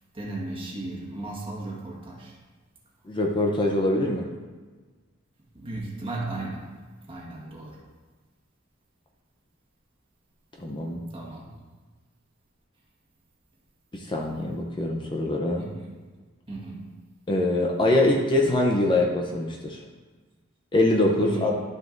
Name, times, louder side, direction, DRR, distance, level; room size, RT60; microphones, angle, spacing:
voice 1, 0.1-2.4 5.5-6.7 7.1-7.8 11.1-11.5 15.5-15.9 16.5-16.9 21.2-21.5, right 2 dB, 25° right, -2 dB, 1.5 m, -35 dB
voice 2, 3.1-4.3 10.6-11.0 13.9-15.7 17.3-19.8 20.7-21.5, left 1 dB, 25° left, 0 dB, 0.6 m, -23 dB
11.5 x 6.1 x 2.6 m, 1.3 s
head